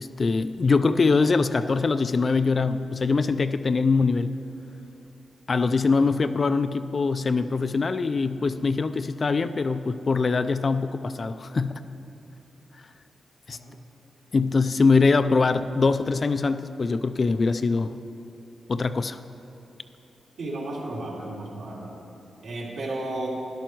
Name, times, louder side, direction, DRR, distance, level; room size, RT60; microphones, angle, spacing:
voice 1, 0.0-4.4 5.5-11.7 13.5-13.6 14.3-17.9 18.7-19.2, left 4 dB, 35° left, 11 dB, 0.3 m, -23 dB
voice 2, 20.4-21.9 22.4-23.3, right 2 dB, 70° right, -4 dB, 2.8 m, -33 dB
12.5 x 11.5 x 4.5 m, 2.8 s
wide cardioid pair, 155°, 0 cm